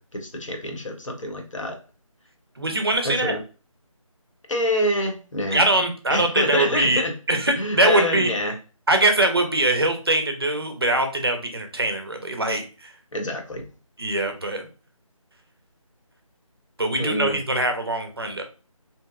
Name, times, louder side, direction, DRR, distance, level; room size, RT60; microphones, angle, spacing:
voice 1, 0.0-1.8 3.0-3.4 4.5-5.6 6.1-7.1 7.6-8.6 13.1-13.6 17.0-17.4, left 1 dB, 65° left, 0.7 m, -26 dB
voice 2, 2.6-3.3 5.5-7.0 7.3-8.3 8.9-12.9 14.0-14.7 16.8-18.4, right 2 dB, 45° right, 0.4 m, -22 dB
2.6 x 2.1 x 2.3 m
figure-of-eight pair, 175°, 18 cm